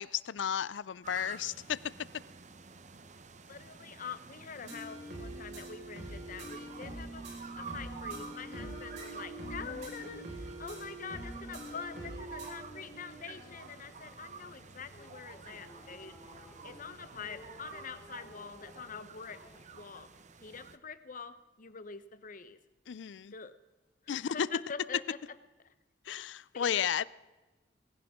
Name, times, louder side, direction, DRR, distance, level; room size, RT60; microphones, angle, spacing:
voice 1, 0.0-1.8 8.5-8.8 22.9-23.3 24.1-24.5 26.1-27.0, left 8 dB, 80° left, 0.4 m, -33 dB
sound 1, 1.0-20.8, right 5 dB, 40° right, 0.8 m, -50 dB
voice 2, 3.5-7.3 7.6-16.2 16.6-19.4 19.7-20.1 20.4-22.6 23.3-23.5 24.0-25.2 25.6-25.7 26.5-27.0, left 6 dB, 50° left, 0.9 m, -45 dB
sound 2, 4.6-12.5, right 1 dB, 70° right, 5.2 m, -44 dB
sound 3, 6.1-19.7, equal, 25° left, 4.7 m, -54 dB
19.0 x 17.0 x 3.7 m
head